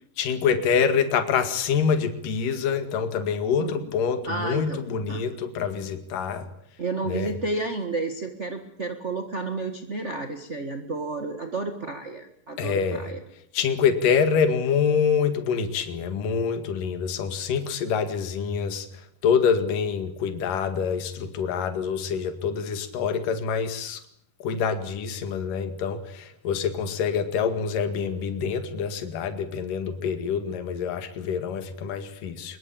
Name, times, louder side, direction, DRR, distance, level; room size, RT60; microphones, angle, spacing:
voice 1, 0.2-6.5 7.0-7.3 12.6-13.1 13.5-18.9 19.2-24.0 24.4-32.6, left 6 dB, 65° left, 8 dB, 3.6 m, -26 dB
voice 2, 3.6-3.9 4.2-4.8 5.1-5.2 6.8-13.2, right 3 dB, 40° right, 6 dB, 1.0 m, -31 dB
24.0 x 22.0 x 8.8 m, 0.70 s
omnidirectional pair, 4.2 m